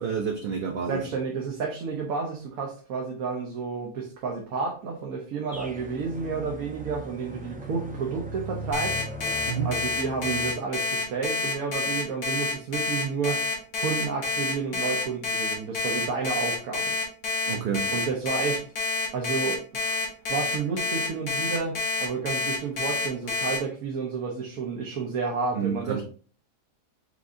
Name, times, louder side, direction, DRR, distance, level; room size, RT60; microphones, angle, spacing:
voice 1, 0.0-1.1 9.5-9.7 17.5-17.9 25.5-26.0, right 6 dB, 55° right, 0.6 m, -29 dB
voice 2, 0.9-9.0 9.6-13.5 13.8-17.0 17.9-18.6 19.1-20.0 20.3-26.0, right 5 dB, 80° right, 1.3 m, -31 dB
sound 1, 5.5-10.5, equal, 10° right, 0.4 m, -39 dB
Alarm, 8.7-23.6, left 3 dB, 75° left, 1.7 m, -28 dB
5.3 x 3.6 x 2.5 m
omnidirectional pair, 1.5 m